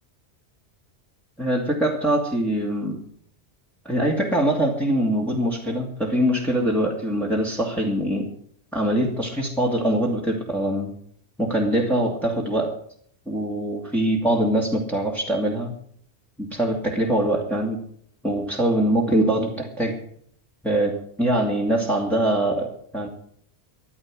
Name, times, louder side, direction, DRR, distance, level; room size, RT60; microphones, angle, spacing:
voice 1, 1.4-3.0 3.8-8.3 8.7-10.9 11.4-12.7 13.3-15.7 16.4-17.8 18.2-20.0 20.6-23.1, right 1 dB, ahead, -2 dB, 2.7 m, -23 dB
14.0 x 10.5 x 7.8 m, 0.63 s
omnidirectional pair, 1.1 m